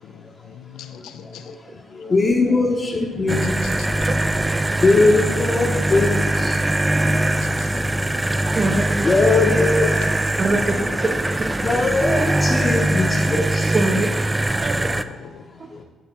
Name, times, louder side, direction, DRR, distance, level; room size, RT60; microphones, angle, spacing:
voice 1, 0.0-1.6 3.4-3.9 7.4-7.8 8.2-8.4 14.8-15.4 15.7-15.8, left 8 dB, 85° left, 10 dB, 0.5 m, -42 dB
voice 2, 1.0-4.0 4.7-7.4 9.0-9.9 11.6-13.7 14.5-14.8 15.7-15.8, left 3 dB, 30° left, -1 dB, 0.9 m, -21 dB
sound 1, 3.3-15.0, right 1 dB, 15° right, 0.3 m, -22 dB
voice 3, 8.5-9.1 9.3-9.6 10.4-11.6 13.7-14.1 14.6-15.0 15.6-15.7, right 2 dB, 35° right, 6 dB, 0.8 m, -24 dB
10.5 x 3.5 x 5.7 m, 1.3 s
cardioid pair, 90°, 0 cm